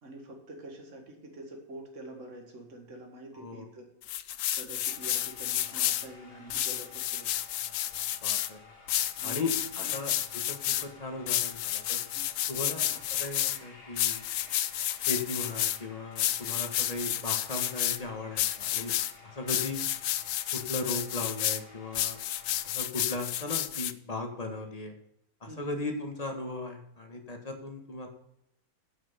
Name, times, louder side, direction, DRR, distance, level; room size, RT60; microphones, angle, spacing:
voice 1, 0.0-3.9 4.5-7.3 9.2-10.0 12.1-12.3 12.7-12.8 25.5-25.8, right 1 dB, 50° right, 2 dB, 2.2 m, -46 dB
voice 2, 3.3-3.6 8.2-8.6 9.2-12.0 12.5-14.2 15.1-18.9 19.2-19.8 20.5-22.2 22.6-24.9 25.4-28.1, left 2 dB, 25° left, 4 dB, 1.6 m, -37 dB
sound 1, 4.0-6.1 6.5-8.5 8.9-10.9 11.3-13.6 14.0-15.8 16.2-18.0 18.4-19.1 19.5-21.6 21.9-23.9, left 12 dB, 65° left, 0.9 m, -31 dB
sound 2, 4.8-22.8, left 4 dB, 40° left, 1.8 m, -53 dB
11.0 x 6.2 x 5.8 m, 0.78 s
omnidirectional pair, 1.6 m